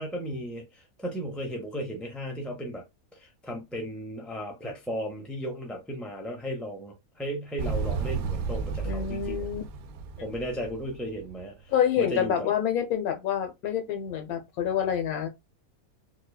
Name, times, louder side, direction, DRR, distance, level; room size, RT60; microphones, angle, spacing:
voice 1, 0.0-2.8 3.2-9.5 10.2-11.5 12.0-12.5, equal, ahead, 0.5 m, -35 dB
Motorcycle, 7.6-11.5, right 5 dB, 80° right, 1.0 m, -33 dB
voice 2, 8.8-9.6 11.7-15.3, left 9 dB, 80° left, 1.2 m, -27 dB
4.7 x 2.3 x 2.3 m
omnidirectional pair, 1.5 m